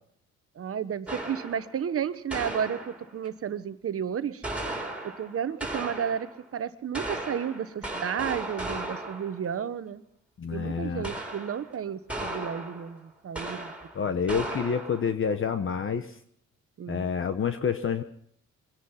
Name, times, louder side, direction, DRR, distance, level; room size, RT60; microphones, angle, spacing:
voice 1, 0.6-4.4 5.2-6.3 6.5-10.0 10.5-13.7 16.8-17.1, right 8 dB, 50° right, 12 dB, 1.1 m, -32 dB
sound 1, 1.1-1.8 2.3-3.3 4.4-6.4 6.9-9.5 11.0-11.7 12.1-13.0 13.4-14.0 14.3-15.1, right 2 dB, 5° right, 3.8 m, -36 dB
voice 2, 10.4-11.1 13.9-16.2 16.9-18.0, left 6 dB, 45° left, 9 dB, 1.0 m, -28 dB
23.0 x 10.5 x 5.7 m, 0.66 s
cardioid pair, 90°, 30 cm